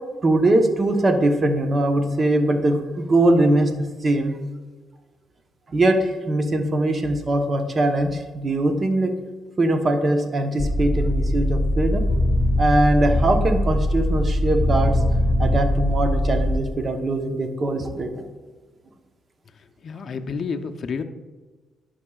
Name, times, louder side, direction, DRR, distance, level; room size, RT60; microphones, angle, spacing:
voice 1, 0.2-3.7 4.0-4.4 5.7-9.1 9.6-12.0 12.6-15.0 15.4-18.3, right 1 dB, 35° right, 5 dB, 0.9 m, -21 dB
sound 1, 10.6-16.6, left 1 dB, 25° left, 1.9 m, -21 dB
voice 2, 19.8-21.0, left 5 dB, 50° left, 7 dB, 0.6 m, -29 dB
11.5 x 5.4 x 2.4 m, 1.4 s
cardioid pair, 90°, 0 cm